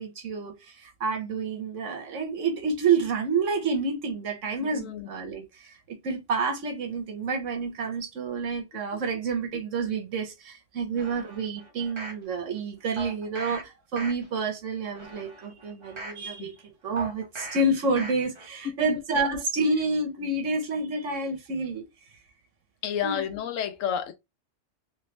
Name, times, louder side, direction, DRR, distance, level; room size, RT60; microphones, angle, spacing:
voice 1, 0.0-21.9 23.0-23.3, right 3 dB, 75° right, 1.3 m, -29 dB
voice 2, 4.6-5.1 16.4-16.5 18.6-18.9 22.8-24.1, left 9 dB, 85° left, 1.0 m, -30 dB
sound 1, 11.0-12.2 13.0-13.6 13.9-14.5 14.9-16.2 17.0-17.6 18.0-18.5 18.9-19.0, right 1 dB, 30° right, 0.7 m, -40 dB
3.2 x 3.0 x 3.2 m
omnidirectional pair, 1.3 m